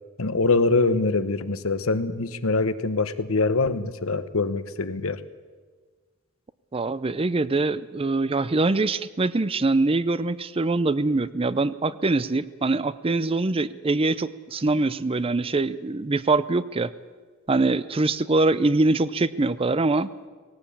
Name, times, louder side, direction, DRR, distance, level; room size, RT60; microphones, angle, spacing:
voice 1, 0.2-5.2, left 3 dB, 70° left, 12 dB, 1.0 m, -24 dB
voice 2, 6.7-16.9 17.5-20.1, right 3 dB, 25° right, 16 dB, 0.5 m, -23 dB
18.0 x 17.5 x 8.6 m, 1.5 s
head